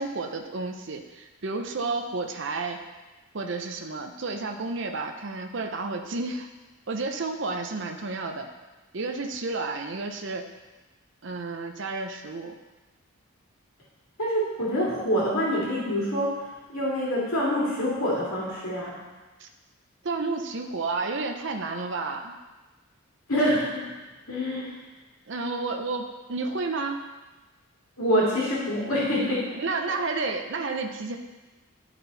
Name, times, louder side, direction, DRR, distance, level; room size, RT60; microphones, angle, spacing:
voice 1, 0.0-2.8 3.3-6.5 6.9-8.5 8.9-10.5 11.2-12.5 19.4-19.5 20.0-22.4 25.3-27.0 29.5-31.2, right 3 dB, 55° right, 3 dB, 0.6 m, -31 dB
voice 2, 14.2-19.0 23.3-23.9 24.3-24.7 28.0-29.5, equal, 85° left, -6 dB, 2.4 m, -26 dB
12.5 x 4.2 x 4.1 m, 1.2 s
head